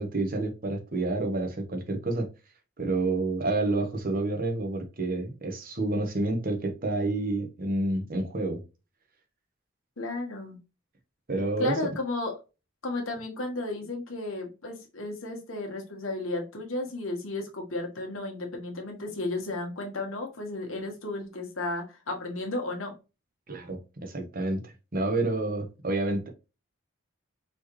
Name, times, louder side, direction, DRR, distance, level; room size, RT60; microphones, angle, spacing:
voice 1, 0.0-2.3 2.8-8.6 11.3-11.8 23.5-26.3, right 2 dB, 45° right, 1.0 m, -29 dB
voice 2, 10.0-10.6 11.6-12.3 12.8-22.9, left 2 dB, 80° left, 1.3 m, -33 dB
4.3 x 3.2 x 3.0 m
head